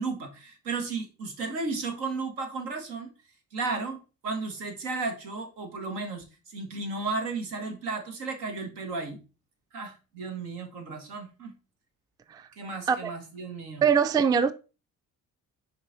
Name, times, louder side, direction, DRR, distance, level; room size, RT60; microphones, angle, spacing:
voice 1, 0.0-3.1 3.5-4.0 4.2-9.2 9.7-11.5 12.6-13.8, right 3 dB, 70° right, 1.8 m, -34 dB
voice 2, 13.8-14.5, right 7 dB, 10° right, 0.3 m, -22 dB
6.3 x 4.5 x 3.9 m
hypercardioid pair, 50°, 42 cm